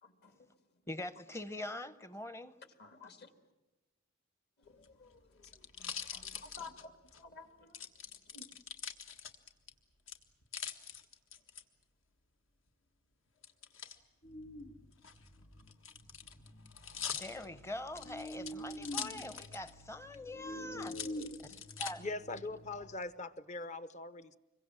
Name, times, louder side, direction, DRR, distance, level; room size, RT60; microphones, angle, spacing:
voice 1, 0.0-0.7 2.2-2.3 2.8-3.5 4.6-8.6, left 4 dB, 50° left, 2.2 m, -55 dB
voice 2, 0.9-2.6 17.1-21.0 21.4-22.1, left 1 dB, 15° left, 0.8 m, -43 dB
sound 1, 4.7-7.2 7.7-9.7 10.1-11.6 13.4-14.0 14.9-19.8 20.1-20.2 20.8-21.9 22.5-23.1, left 7 dB, 65° left, 1.7 m, -44 dB
sound 2, 14.2-22.9, equal, 90° left, 3.0 m, -47 dB
voice 3, 22.0-24.4, left 2 dB, 35° left, 0.9 m, -41 dB
26.5 x 23.0 x 7.7 m
head